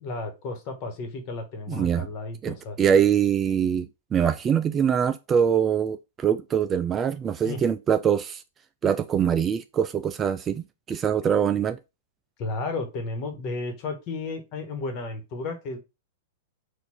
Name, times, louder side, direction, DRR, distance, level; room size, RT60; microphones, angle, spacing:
voice 1, 0.0-2.8 7.4-7.6 12.4-15.8, left 3 dB, 40° left, 1.4 m, -33 dB
voice 2, 1.7-2.1 2.4-8.4 8.8-11.8, right 8 dB, 25° right, 0.3 m, -23 dB
4.5 x 2.6 x 4.2 m
hypercardioid pair, 110°, 0 cm